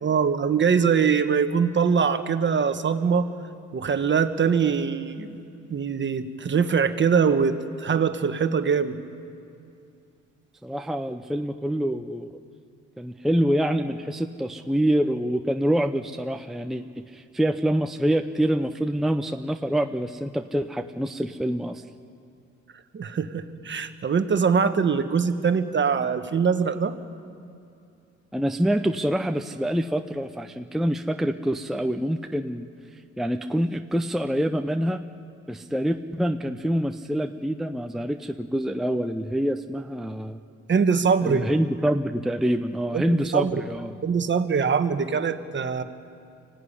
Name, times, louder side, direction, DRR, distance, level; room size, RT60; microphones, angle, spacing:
voice 1, 0.0-3.3 3.7-5.4 5.7-9.0 22.9-26.9 40.7-41.5 42.9-43.6 44.0-45.8, right 6 dB, 40° right, 9 dB, 1.3 m, -23 dB
voice 2, 10.6-12.3 13.0-21.8 28.3-32.7 33.2-35.0 35.5-40.4 41.2-44.0, equal, ahead, 6 dB, 0.7 m, -26 dB
24.5 x 16.0 x 10.0 m, 2.5 s
cardioid pair, 90°, 30 cm